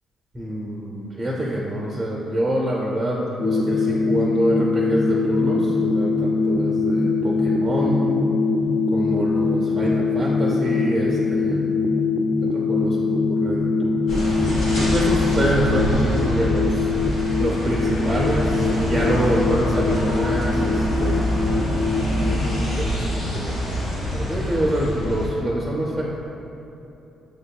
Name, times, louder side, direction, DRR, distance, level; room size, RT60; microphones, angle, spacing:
voice 1, 0.3-8.2 8.9-11.6 12.4-14.5 14.8-16.9 17.4-21.3 22.1-23.9 24.1-26.0, right 1 dB, 20° right, -4 dB, 0.5 m, -26 dB
sound 1, 3.4-22.4, left 3 dB, 35° left, 0.4 m, -22 dB
sound 2, 14.1-25.3, equal, 90° left, 1.1 m, -25 dB
6.7 x 2.6 x 2.2 m, 2.9 s
cardioid pair, 90°, 0 cm